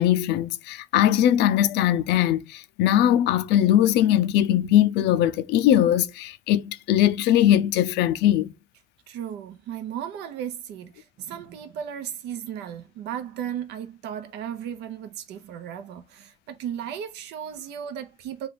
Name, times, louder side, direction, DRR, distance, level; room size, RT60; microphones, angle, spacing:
voice 1, 0.0-8.5, left 11 dB, 85° left, 0.4 m, -20 dB
voice 2, 9.1-18.5, right 9 dB, 90° right, 0.8 m, -35 dB
3.3 x 2.4 x 4.0 m
cardioid pair, 110°, 17 cm